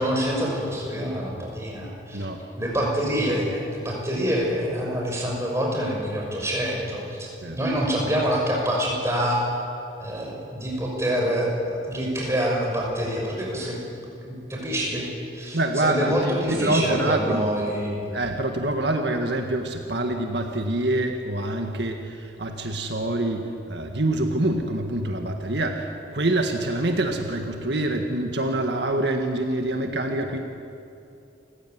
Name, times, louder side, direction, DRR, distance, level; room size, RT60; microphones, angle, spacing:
voice 1, 0.0-2.3 2.6-9.4 10.0-13.8 14.2-15.1 15.3-18.1, equal, 15° right, -2 dB, 6.1 m, -26 dB
voice 2, 15.5-17.5 18.1-30.4, right 1 dB, 70° right, 3 dB, 1.7 m, -26 dB
29.0 x 16.0 x 9.5 m, 2.7 s
head